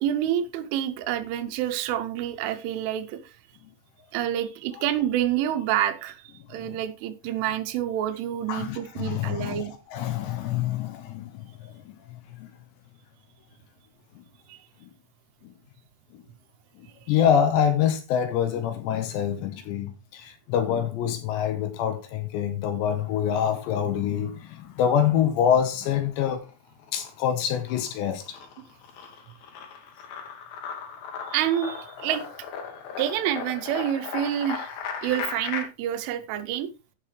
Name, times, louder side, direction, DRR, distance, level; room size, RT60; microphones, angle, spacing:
voice 1, 0.0-3.2 4.1-9.7 14.5-14.6 31.3-32.2 33.0-34.7 35.0-36.7, right 11 dB, 85° right, 3.4 m, -28 dB
voice 2, 8.5-12.5 14.2-14.3 14.8-14.9 15.4-15.5 16.1-16.2 16.8-26.4 26.9-28.4, left 9 dB, 80° left, 2.9 m, -26 dB
sound 1, 25.7-26.5 26.8-35.6, left 6 dB, 65° left, 2.8 m, -37 dB
14.5 x 5.8 x 3.3 m
omnidirectional pair, 5.5 m